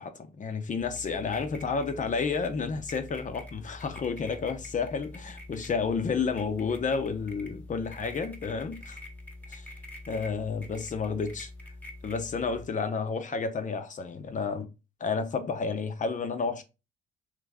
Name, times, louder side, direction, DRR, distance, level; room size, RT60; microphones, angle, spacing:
voice 1, 0.0-9.0 9.5-9.7 10.1-11.5 12.0-14.7 15.0-16.6, left 5 dB, 40° left, 0.7 m, -31 dB
sound 1, 0.8-12.7, left 2 dB, 10° left, 1.1 m, -45 dB
3.3 x 3.2 x 3.6 m
cardioid pair, 90°, 20 cm